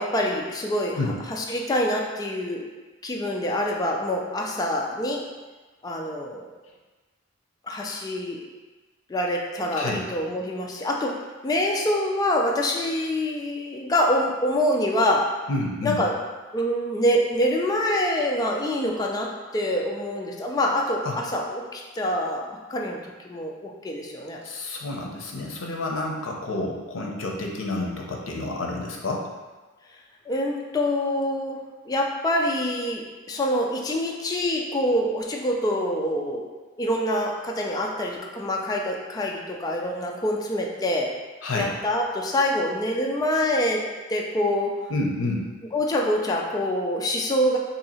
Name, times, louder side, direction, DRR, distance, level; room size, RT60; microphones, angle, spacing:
voice 1, 0.0-1.0 1.3-2.7 3.0-5.2 5.8-6.5 7.7-8.4 9.1-15.3 15.8-16.1 16.5-22.4 22.7-23.0 23.2-24.4 30.3-31.6 31.9-36.4 36.8-41.1 41.5-43.8 44.1-44.8 45.7-47.6, left 1 dB, 20° left, -1 dB, 0.3 m, -25 dB
voice 2, 15.5-16.0 21.0-21.2 24.4-29.3 41.4-41.7 44.9-45.5, left 2 dB, 85° left, 0 dB, 0.6 m, -29 dB
2.8 x 2.7 x 4.1 m, 1.3 s
head